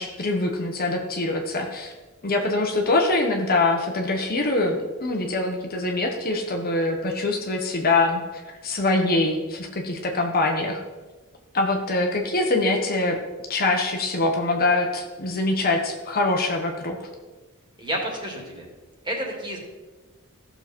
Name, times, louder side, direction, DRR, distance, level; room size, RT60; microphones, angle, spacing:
voice 1, 0.0-1.9 2.2-10.8 11.5-13.2 13.5-17.1, left 2 dB, 45° left, 2 dB, 1.3 m, -24 dB
voice 2, 17.8-18.6 19.0-19.6, right 1 dB, 20° right, -1 dB, 2.6 m, -30 dB
15.5 x 6.8 x 4.5 m, 1.2 s
head